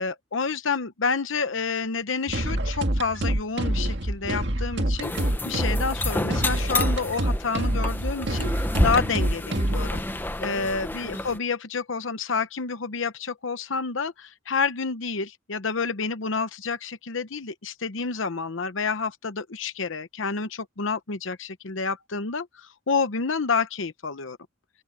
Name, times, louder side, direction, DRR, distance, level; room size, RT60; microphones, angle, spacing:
voice 1, 0.0-10.0 10.4-24.4, left 5 dB, 70° left, 0.9 m, -29 dB
sound 1, 2.3-10.0, right 1 dB, 55° right, 1.9 m, -26 dB
sound 2, 5.0-11.4, left 1 dB, 10° left, 0.8 m, -30 dB
open air
head